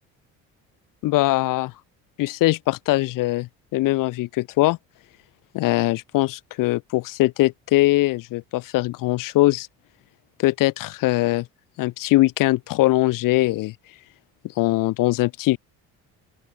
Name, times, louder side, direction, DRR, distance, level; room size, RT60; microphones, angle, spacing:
voice 1, 1.0-1.7 2.2-4.8 5.5-9.7 10.4-11.5 11.8-13.7 14.6-15.6, left 18 dB, 65° left, 0.7 m, -21 dB
open air
supercardioid pair, 70°, 36 cm